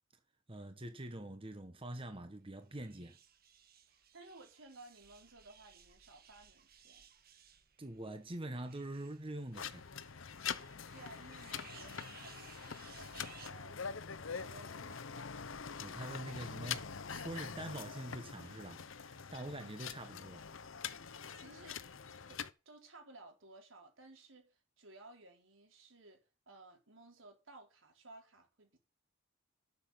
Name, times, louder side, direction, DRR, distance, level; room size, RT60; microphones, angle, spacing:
voice 1, 0.5-3.2 7.8-10.1 15.8-20.4, right 1 dB, 30° right, 1.4 m, -45 dB
sound 1, 2.6-13.5, right 8 dB, 50° right, 1.6 m, -60 dB
voice 2, 3.9-7.0 10.9-14.0 14.3-15.3 21.3-21.8 22.3-26.2 26.5-28.8, right 2 dB, 85° right, 4.3 m, -57 dB
sound 2, 9.5-22.5, left 7 dB, 85° left, 0.8 m, -44 dB
12.5 x 7.0 x 5.8 m
head